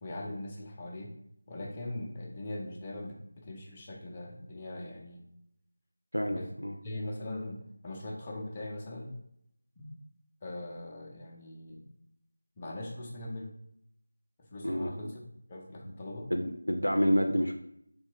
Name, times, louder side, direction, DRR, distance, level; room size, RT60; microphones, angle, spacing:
voice 1, 0.0-1.1 1.5-5.2 6.2-6.5 6.8-9.2 9.8-10.0 10.4-11.9 12.6-13.5 14.4-15.2 15.5-16.3, left 1 dB, 15° left, -2 dB, 0.5 m, -41 dB
voice 2, 6.1-6.7 14.6-14.9 15.8-15.9 16.3-17.5, equal, 90° left, 4 dB, 0.4 m, -28 dB
3.5 x 2.5 x 3.3 m, 0.74 s
figure-of-eight pair, 170°, 0 cm